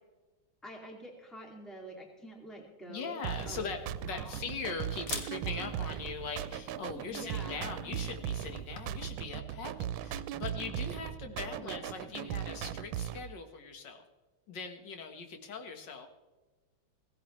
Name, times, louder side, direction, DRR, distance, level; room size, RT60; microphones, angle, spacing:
voice 1, 0.6-3.8 4.1-4.5 5.1-5.9 6.9-8.0 11.6-11.9, right 1 dB, ahead, 0 dB, 2.2 m, -48 dB
voice 2, 2.9-14.0 14.5-16.1, left 5 dB, 65° left, 6 dB, 2.0 m, -41 dB
sound 1, 3.2-13.2, right 11 dB, 90° right, 1.4 m, -38 dB
Camera, 3.3-9.1, left 4 dB, 45° left, 1.5 m, -48 dB
16.5 x 16.0 x 3.2 m, 1.2 s
omnidirectional pair, 2.1 m